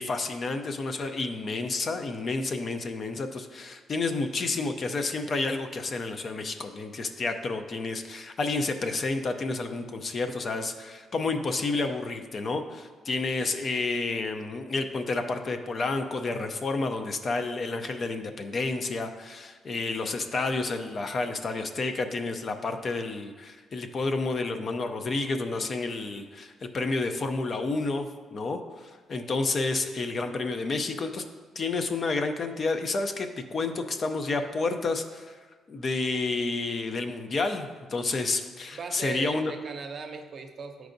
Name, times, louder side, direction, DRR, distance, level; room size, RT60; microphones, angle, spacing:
voice 1, 0.0-31.2 31.6-35.4 35.7-39.5, left 3 dB, 45° left, 6 dB, 0.5 m, -30 dB
voice 2, 38.7-40.9, right 5 dB, 50° right, 5 dB, 0.7 m, -38 dB
9.9 x 4.6 x 2.6 m, 1.4 s
cardioid pair, 90°, 0 cm